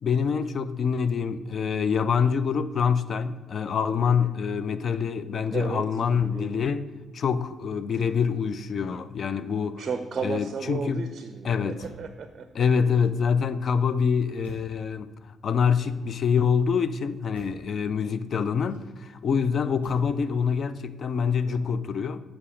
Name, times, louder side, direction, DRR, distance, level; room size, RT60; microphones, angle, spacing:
voice 1, 0.0-6.8 7.1-9.8 10.2-11.1 11.4-11.8 12.5-22.2, left 6 dB, 50° left, 0.4 m, -25 dB
voice 2, 4.0-4.3 5.5-5.9 6.1-6.6 9.8-12.5, right 5 dB, 45° right, 0.4 m, -34 dB
Motor vehicle (road), 11.8-12.2 12.9-13.6 14.4-14.9 15.7-16.4 17.3-17.7 18.6-19.2 19.8-20.2 20.6-21.0, equal, 85° left, 1.4 m, -51 dB
8.3 x 4.4 x 5.0 m
figure-of-eight pair, 45°, 0 cm